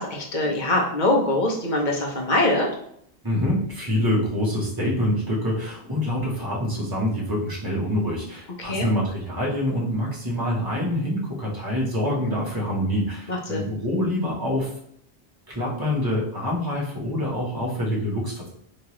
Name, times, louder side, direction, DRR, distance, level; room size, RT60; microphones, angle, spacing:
voice 1, 0.0-2.7 8.6-8.9 13.3-13.6, left 1 dB, 50° left, -1 dB, 0.9 m, -23 dB
voice 2, 3.2-14.7 15.5-18.5, left 1 dB, 20° right, -5 dB, 1.1 m, -26 dB
3.5 x 2.9 x 3.0 m, 0.68 s
omnidirectional pair, 1.1 m